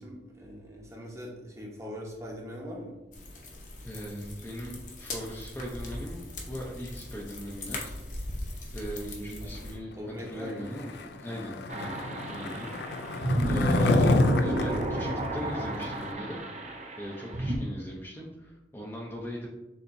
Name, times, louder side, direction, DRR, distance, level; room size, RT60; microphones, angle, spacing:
voice 1, 0.0-3.0 9.4-9.5 9.9-10.7, equal, 15° right, -3 dB, 0.9 m, -41 dB
sound 1, 3.1-9.8, left 2 dB, 45° left, 0.8 m, -40 dB
voice 2, 3.8-8.0 8.7-10.9 11.2-12.0 12.3-16.4 17.0-19.5, equal, 10° left, -3 dB, 0.5 m, -39 dB
Skateboard, 10.7-16.1, left 2 dB, 65° left, 0.4 m, -29 dB
sound 2, 11.7-17.6, right 1 dB, 40° right, 0.5 m, -30 dB
6.7 x 2.8 x 2.6 m, 0.99 s
head